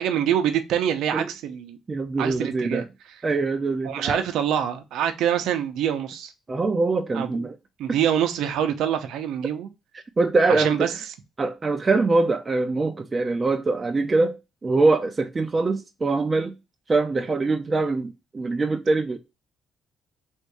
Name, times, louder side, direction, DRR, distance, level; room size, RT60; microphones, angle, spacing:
voice 1, 0.0-1.8 2.2-2.8 3.8-6.3 7.1-7.5 7.8-9.7 10.5-10.9, right 9 dB, 85° right, 0.7 m, -25 dB
voice 2, 1.9-2.8 3.2-4.2 6.5-7.6 10.2-10.9 11.4-14.3 14.6-16.5 16.9-19.2, right 3 dB, 30° right, 0.5 m, -23 dB
3.6 x 2.6 x 4.6 m
cardioid pair, 90°, 0 cm